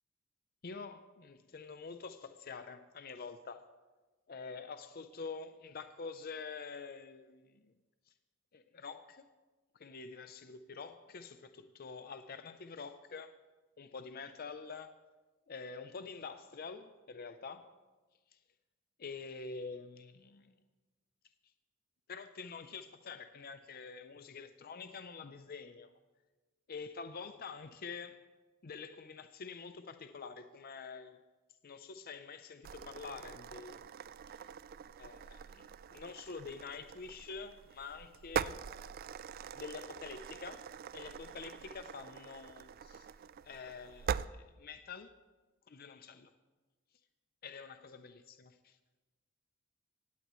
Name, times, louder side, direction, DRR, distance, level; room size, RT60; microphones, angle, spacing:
voice 1, 0.6-3.7 4.3-7.7 8.5-9.3 9.7-13.3 13.8-15.0 15.5-17.7 18.3-18.4 19.0-20.5 22.1-25.9 26.7-28.2 28.6-31.2 31.6-34.0 34.3-34.4 35.0-38.6 39.5-40.6 40.9-43.1 43.4-45.1 45.7-46.3 47.4-48.8, left 5 dB, 50° left, 0.6 m, -47 dB
sound 1, 32.6-44.3, right 7 dB, 50° right, 0.3 m, -43 dB
17.0 x 17.0 x 3.1 m
head